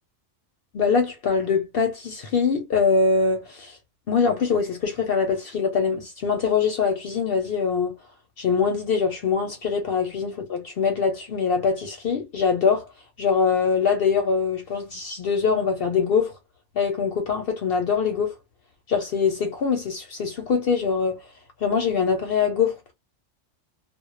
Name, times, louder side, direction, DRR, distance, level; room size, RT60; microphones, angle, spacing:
voice 1, 0.7-3.8 4.1-8.0 8.4-12.9 13.2-16.3 16.8-18.4 18.9-21.2 21.6-22.9, left 5 dB, 60° left, 0.7 m, -23 dB
2.2 x 2.0 x 3.0 m
omnidirectional pair, 1.3 m